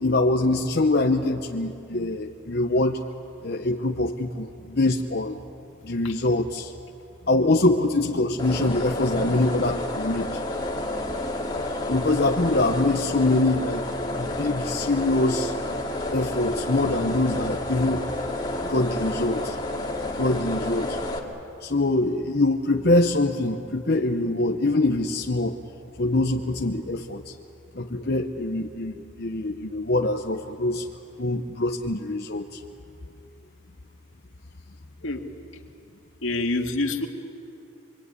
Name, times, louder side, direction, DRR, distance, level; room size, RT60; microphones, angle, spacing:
voice 1, 0.0-3.0 3.4-5.4 5.8-6.7 7.3-10.4 11.9-13.9 14.1-15.5 16.1-18.0 18.6-19.6 20.2-21.0 21.6-25.6 26.0-27.3 27.7-30.9 31.2-32.6, left 2 dB, 50° left, 2 dB, 0.9 m, -24 dB
sound 1, 8.4-21.2, left 1 dB, 20° left, 2.2 m, -30 dB
voice 2, 36.2-37.1, left 2 dB, 75° left, 3 dB, 2.1 m, -26 dB
26.0 x 22.5 x 9.7 m, 2.8 s
head